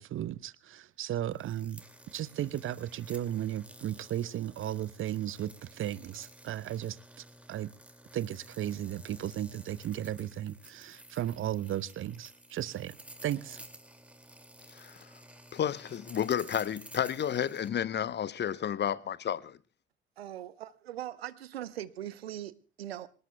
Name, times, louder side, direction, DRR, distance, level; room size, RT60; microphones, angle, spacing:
voice 1, 0.0-1.8 2.1-7.0 7.5-7.7 8.1-13.0 13.2-13.6, right 12 dB, 40° right, 0.8 m, -35 dB
sound 1, 1.3-17.7, right 1 dB, 5° right, 2.3 m, -53 dB
voice 2, 15.5-19.6, left 9 dB, 35° left, 0.8 m, -31 dB
voice 3, 20.2-23.1, right 12 dB, 75° right, 0.9 m, -41 dB
26.0 x 19.0 x 2.2 m
figure-of-eight pair, 50°, 31 cm